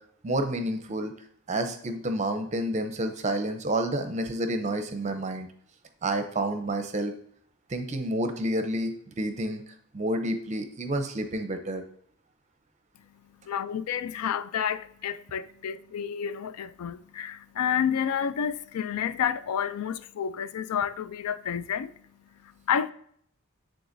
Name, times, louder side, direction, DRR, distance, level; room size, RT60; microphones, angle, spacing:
voice 1, 0.2-1.1 1.5-5.5 6.0-7.1 7.7-9.6 9.9-11.8, right 1 dB, 30° right, 0.6 m, -29 dB
voice 2, 13.5-21.9 22.4-22.9, left 8 dB, 90° left, 0.4 m, -30 dB
9.8 x 3.9 x 2.6 m
head